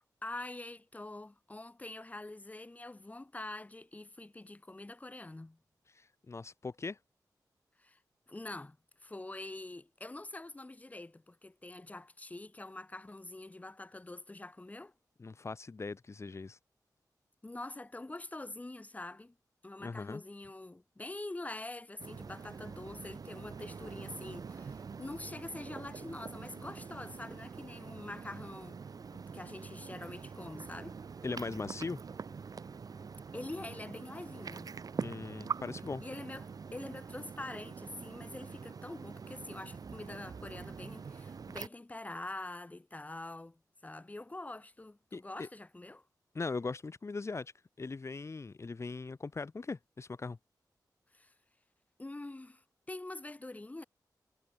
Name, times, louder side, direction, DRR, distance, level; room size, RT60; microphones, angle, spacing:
voice 1, 0.0-5.6 7.8-8.0 8.3-14.9 17.4-19.3 19.6-28.8 29.1-31.0 33.3-34.7 36.0-46.1 51.1-51.3 52.0-53.8, left 2 dB, 20° left, 4.9 m, -45 dB
voice 2, 5.9-7.0 15.2-16.6 19.8-20.2 31.2-32.0 35.0-36.0 45.1-45.5 46.3-47.5 47.8-50.4, left 4 dB, 40° left, 4.5 m, -40 dB
sound 1, 22.0-41.7, right 5 dB, 60° right, 2.1 m, -44 dB
wide cardioid pair, 100°, 7 cm